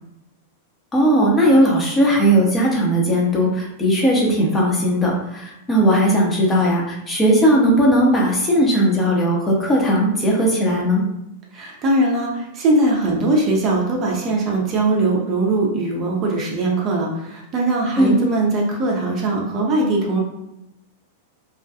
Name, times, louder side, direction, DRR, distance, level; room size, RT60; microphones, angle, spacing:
voice 1, 0.9-11.0 18.0-18.1, equal, 15° left, -3 dB, 0.7 m, -17 dB
voice 2, 11.5-20.2, right 2 dB, 35° right, -1 dB, 0.6 m, -20 dB
2.4 x 2.2 x 2.6 m, 0.88 s
figure-of-eight pair, 95°, 0 cm